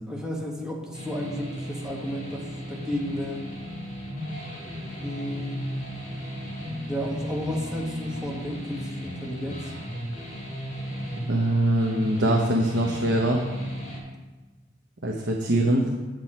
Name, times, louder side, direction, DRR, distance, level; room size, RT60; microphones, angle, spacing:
voice 1, 0.1-3.4 5.0-5.6 6.9-9.6, equal, 5° right, -3 dB, 1.4 m, -33 dB
sound 1, 0.9-14.0, equal, 45° left, 2.6 m, -35 dB
voice 2, 11.3-13.4 15.0-15.9, right 1 dB, 65° right, 0 dB, 0.9 m, -23 dB
7.9 x 7.6 x 4.3 m, 1.2 s
head